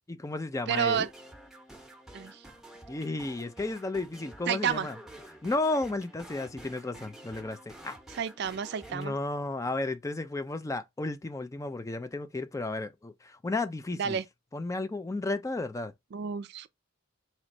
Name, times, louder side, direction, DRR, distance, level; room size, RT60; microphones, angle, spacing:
voice 1, 0.1-1.1 2.9-4.9 5.4-8.0 8.9-14.2 14.5-15.9, left 2 dB, 15° left, 0.4 m, -33 dB
sound 1, 0.7-9.1, right 1 dB, ahead, 0.8 m, -49 dB
voice 2, 0.7-1.1 2.1-2.4 4.5-4.9 8.1-9.1 14.0-14.2 16.1-16.7, right 7 dB, 55° right, 0.4 m, -30 dB
4.2 x 3.1 x 2.6 m
head